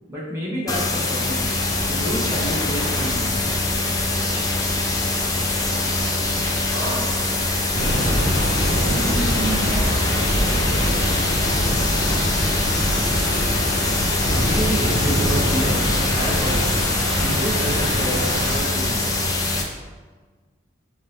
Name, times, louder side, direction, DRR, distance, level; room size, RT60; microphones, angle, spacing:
voice 1, 0.1-1.5 1.8-3.3 14.3-16.9 17.2-19.1, right 1 dB, 15° right, -8 dB, 1.0 m, -29 dB
Normalized Netbook Silence, 0.7-19.6, left 2 dB, 20° left, 0.4 m, -23 dB
sound 1, 1.6-19.3, right 1 dB, 55° right, 0.8 m, -35 dB
voice 2, 6.6-7.2 8.8-10.7, right 2 dB, 75° right, -4 dB, 1.3 m, -31 dB
Thunder / Rain, 7.7-18.6, equal, 70° left, 1.3 m, -24 dB
5.3 x 2.7 x 3.4 m, 1.3 s
head